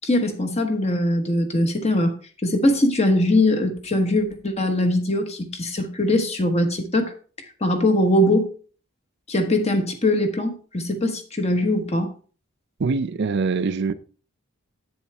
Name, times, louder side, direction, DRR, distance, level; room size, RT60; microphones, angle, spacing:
voice 1, 0.0-2.1 2.4-7.1 7.6-8.5 9.3-12.1, left 1 dB, 30° left, 1.3 m, -21 dB
voice 2, 12.8-13.9, right 4 dB, 55° right, 0.5 m, -23 dB
8.6 x 7.1 x 3.4 m
head